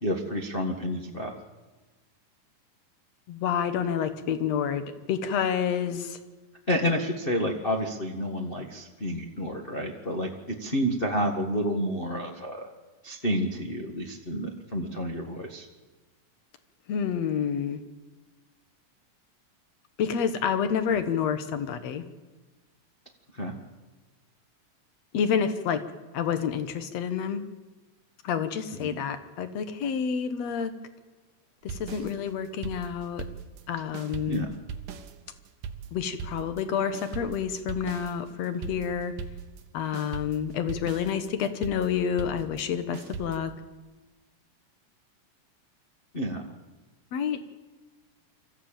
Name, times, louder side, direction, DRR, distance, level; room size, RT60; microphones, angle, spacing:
voice 1, 0.0-1.3 6.7-10.3 10.6-12.7 13.0-15.7 23.3-23.5 28.8-29.0 34.3-34.5 46.1-46.4, equal, 30° left, 1 dB, 1.0 m, -29 dB
voice 2, 3.3-6.2 16.9-17.8 20.0-22.1 25.1-25.8 26.1-27.4 28.2-30.8 31.6-33.2 33.7-34.4 35.9-39.1 39.7-43.5 47.1-47.4, left 7 dB, 60° left, 10 dB, 2.2 m, -29 dB
sound 1, 31.7-33.7 33.9-39.7 39.9-43.4, right 6 dB, 85° right, 2.7 m, -40 dB
25.0 x 14.5 x 9.0 m, 1.2 s
omnidirectional pair, 3.7 m